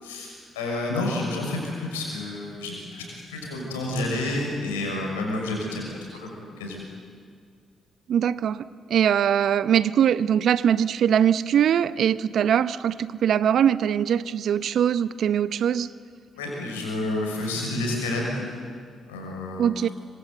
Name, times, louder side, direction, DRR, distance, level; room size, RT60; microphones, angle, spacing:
voice 1, 0.0-3.0 3.3-6.8 16.4-18.7 19.1-19.8, left 2 dB, 90° left, 0 dB, 6.2 m, -30 dB
voice 2, 8.1-15.9 19.6-19.9, right 9 dB, 65° right, 16 dB, 0.8 m, -22 dB
26.5 x 25.5 x 8.1 m, 2.2 s
hypercardioid pair, 40°, 0 cm